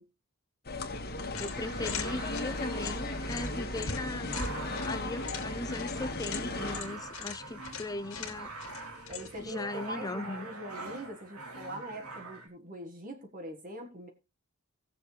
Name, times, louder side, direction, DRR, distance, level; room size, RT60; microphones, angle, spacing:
sound 1, 0.6-6.8, left 2 dB, 45° left, 1.9 m, -36 dB
sound 2, 1.3-9.5, left 6 dB, 70° left, 2.3 m, -42 dB
voice 1, 1.4-8.5 9.4-10.5, left 2 dB, 15° left, 0.6 m, -38 dB
sound 3, 1.4-12.5, right 2 dB, 85° right, 3.5 m, -45 dB
voice 2, 9.1-14.1, right 1 dB, 40° right, 1.7 m, -43 dB
18.0 x 7.0 x 3.3 m
head